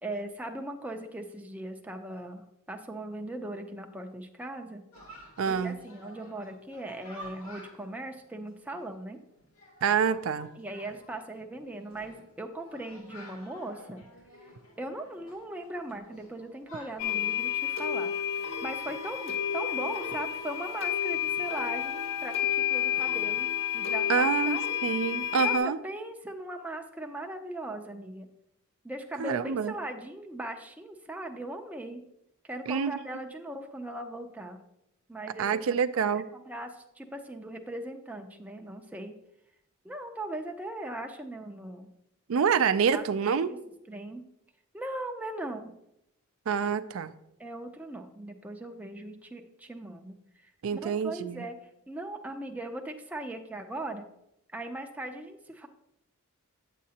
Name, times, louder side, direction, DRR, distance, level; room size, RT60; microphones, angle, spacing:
voice 1, 0.0-4.8 5.4-9.2 10.6-14.0 14.8-18.1 18.6-24.6 25.4-25.6 25.8-28.3 28.8-32.0 32.4-34.6 35.1-35.6 36.3-39.1 39.8-41.9 42.9-43.6 43.9-44.2 44.7-45.7 47.4-51.6 51.9-54.1 54.5-55.7, right 1 dB, 5° right, 3 dB, 0.5 m, -39 dB
Chatter, 4.9-24.5, equal, 85° left, 2.4 m, -53 dB
voice 2, 5.4-5.8 9.8-10.5 24.1-25.8 29.2-29.7 32.7-32.9 35.4-36.2 42.3-43.5 46.5-47.1 50.6-51.4, right 6 dB, 70° right, 13 dB, 0.4 m, -27 dB
sound 1, 17.0-25.6, left 10 dB, 55° left, 1.3 m, -30 dB
9.1 x 7.4 x 2.8 m, 0.82 s
head